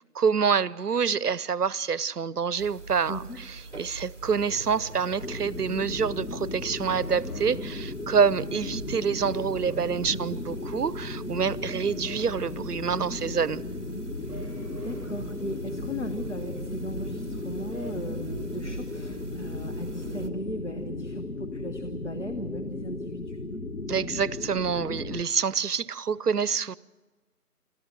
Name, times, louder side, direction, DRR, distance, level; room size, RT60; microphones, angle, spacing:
voice 1, 0.1-3.3 3.8-13.6 23.9-26.8, right 6 dB, 80° right, 21 dB, 0.7 m, -27 dB
sound 1, 2.6-20.3, right 3 dB, 50° right, 1.1 m, -42 dB
voice 2, 3.1-3.4 10.1-10.2 14.2-23.4, equal, 50° left, 6 dB, 1.2 m, -37 dB
sound 2, 4.2-5.8 6.8-8.3 9.3-10.6 11.7-13.0 14.3-15.8 17.7-17.9, right 2 dB, 25° right, 5.1 m, -46 dB
sound 3, 5.2-25.2, left 2 dB, 75° left, 1.4 m, -36 dB
26.0 x 14.0 x 7.4 m, 1.3 s
figure-of-eight pair, 180°, 46 cm